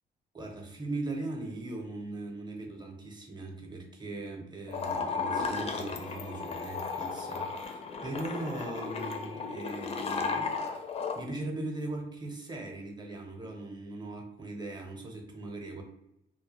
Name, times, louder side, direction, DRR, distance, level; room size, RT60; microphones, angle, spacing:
voice 1, 0.3-10.9 11.1-15.8, right 2 dB, 20° right, 2 dB, 0.7 m, -39 dB
sound 1, 4.7-11.2, left 4 dB, 30° left, 0.4 m, -34 dB
2.2 x 2.1 x 2.9 m, 0.83 s
cardioid pair, 90°, 20 cm